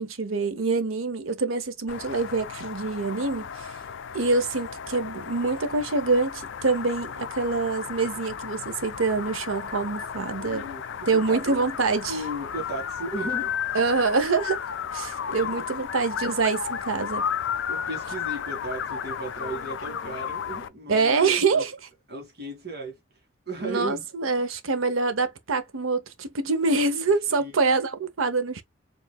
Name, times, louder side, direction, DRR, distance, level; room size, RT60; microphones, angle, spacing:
voice 1, 0.0-3.7 4.1-10.6 11.1-12.2 13.7-14.6 14.9-17.2 20.9-21.7 23.6-28.6, right 4 dB, 85° right, 0.7 m, -25 dB
sound 1, 1.9-20.7, left 7 dB, 60° left, 0.4 m, -34 dB
voice 2, 10.4-11.5 12.1-13.5 15.3-15.6 17.7-21.7 22.1-23.0 23.5-24.0 27.3-27.6, right 2 dB, 50° right, 1.8 m, -35 dB
4.5 x 3.2 x 2.2 m
head